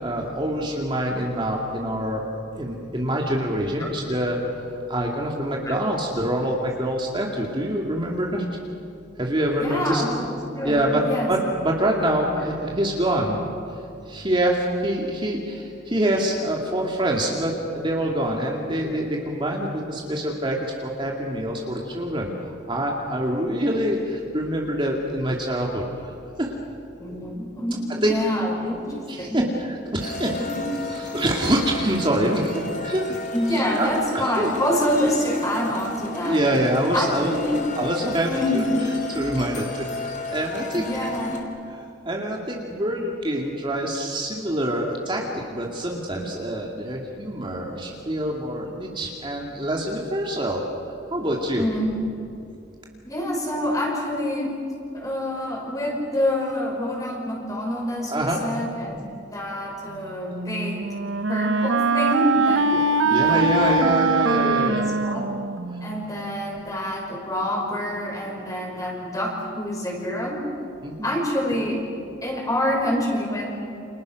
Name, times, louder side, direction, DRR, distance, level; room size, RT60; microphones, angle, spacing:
voice 1, 0.0-2.2 2.6-8.5 9.2-10.0 10.6-13.4 14.1-26.1 26.4-26.5 28.0-28.1 29.1-30.4 30.9-33.1 33.8-34.5 36.2-37.4 37.7-38.6 39.1-40.8 41.7-41.8 42.0-45.2 45.5-50.6 51.1-51.7 58.1-58.4 62.7-62.8 63.1-64.9 65.7-65.8 70.8-71.1, right 1 dB, 25° right, -1 dB, 2.4 m, -25 dB
voice 2, 9.6-11.3 27.0-29.4 30.4-30.6 33.3-36.4 36.9-37.6 38.3-38.7 40.7-41.4 51.6-52.0 53.0-54.6 54.9-59.1 59.3-60.9 61.3-62.7 63.0-63.9 64.2-65.3 65.8-70.4 71.0-71.8 72.2-73.7, equal, 20° left, -1 dB, 5.8 m, -27 dB
sound 1, 30.0-41.4, left 3 dB, 40° left, 3.6 m, -34 dB
Wind instrument woodwind instrument, 60.3-66.1, right 3 dB, 85° right, 0.7 m, -22 dB
29.5 x 28.0 x 6.4 m, 2.6 s
head